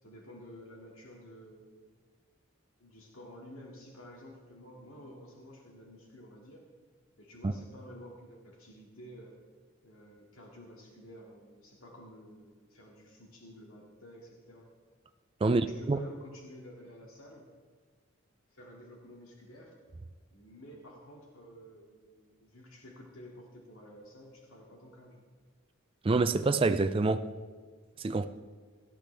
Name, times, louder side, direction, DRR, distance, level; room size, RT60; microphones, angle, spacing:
voice 1, 0.0-1.8 2.8-6.7 7.2-9.4 9.8-14.7 15.4-17.5 18.5-19.7 20.3-25.2, equal, 80° left, 2.3 m, -51 dB
voice 2, 15.4-16.0 26.0-27.3 28.0-28.3, right 3 dB, 25° right, 0.4 m, -26 dB
18.0 x 12.5 x 3.4 m
head